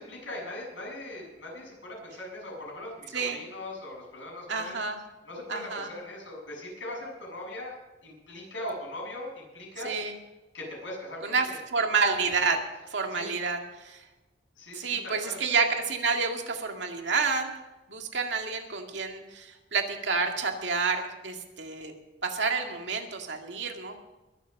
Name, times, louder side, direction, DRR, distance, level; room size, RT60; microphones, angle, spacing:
voice 1, 0.0-4.8 5.2-7.7 8.0-9.9 10.5-11.6 13.1-13.3 14.6-15.4, left 1 dB, 85° left, -2 dB, 7.1 m, -40 dB
voice 2, 4.5-5.0 5.5-5.9 9.8-10.1 11.2-12.6 12.9-14.0 14.7-17.5 17.9-21.9 22.2-23.9, right 4 dB, 75° right, 3 dB, 2.1 m, -29 dB
22.0 x 7.4 x 6.4 m, 1.0 s
head